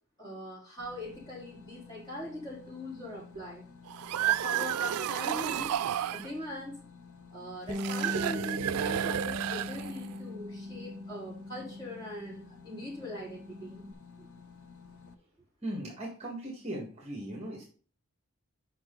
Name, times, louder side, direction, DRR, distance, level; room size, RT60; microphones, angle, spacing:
voice 1, 0.2-3.6 4.3-5.7 6.1-6.8 7.3-13.9 14.2-14.3, equal, 20° left, -5 dB, 3.7 m, -41 dB
sound 1, 0.8-15.1, left 5 dB, 75° left, 0.8 m, -53 dB
Voice Monster Rattle Mono, 3.9-6.3 7.7-10.2, right 10 dB, 90° right, 0.3 m, -31 dB
Bass guitar, 7.7-12.4 12.7-13.9, left 1 dB, 15° right, 0.4 m, -40 dB
voice 2, 15.6-17.6, right 1 dB, 30° right, -1 dB, 1.6 m, -38 dB
7.6 x 5.5 x 3.8 m, 0.41 s
head